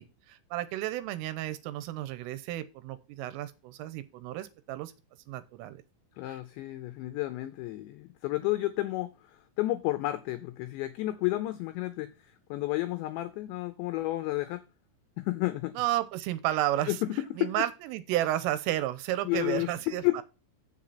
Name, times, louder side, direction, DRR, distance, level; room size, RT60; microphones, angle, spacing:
voice 1, 0.0-4.9 5.3-5.8 6.3-6.4 15.8-17.0 17.4-20.2, right 14 dB, 85° right, 3.3 m, -32 dB
voice 2, 6.2-14.6 15.2-15.7 16.9-17.6 19.2-20.2, left 17 dB, 85° left, 2.5 m, -31 dB
7.8 x 7.3 x 5.6 m
omnidirectional pair, 6.0 m